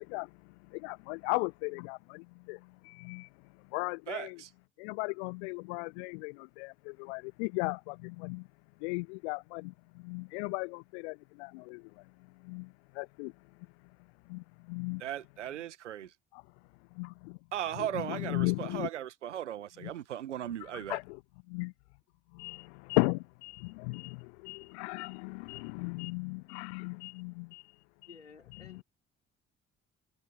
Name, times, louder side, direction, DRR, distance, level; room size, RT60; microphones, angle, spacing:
voice 1, 0.0-4.4 4.8-8.5 8.8-13.3 14.3-15.0 16.3-16.4 16.9-17.4 17.8-18.9 19.8-19.9 20.7-21.2 21.5-21.7 22.3-28.2 28.5-28.8, left 31 dB, 65° left, 0.6 m, -37 dB
voice 2, 4.1-4.5 15.0-16.1 17.5-21.0, right 11 dB, 80° right, 1.7 m, -37 dB
voice 3, 28.0-28.8, left 5 dB, 85° left, 5.4 m, -54 dB
figure-of-eight pair, 45°, 35 cm